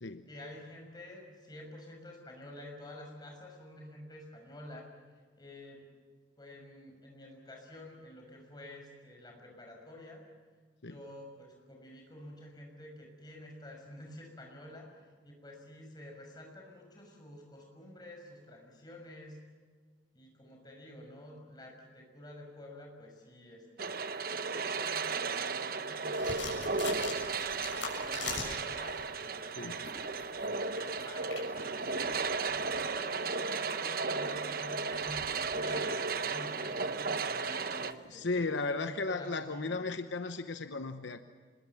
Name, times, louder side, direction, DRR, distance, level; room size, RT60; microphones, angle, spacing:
voice 1, 0.3-4.9 5.4-5.8 6.4-10.2 10.9-19.4 20.1-24.0 24.3-29.9 30.4-32.1 32.5-39.8, left 1 dB, 20° left, 1 dB, 6.2 m, -50 dB
sound 1, 23.8-37.9, right 4 dB, 50° right, 0.9 m, -34 dB
sound 2, 26.1-29.1 29.6-38.2, left 4 dB, 90° left, 6.6 m, -45 dB
voice 2, 38.1-41.2, left 3 dB, 75° left, 8 dB, 0.9 m, -35 dB
27.0 x 21.5 x 7.3 m, 1.5 s
head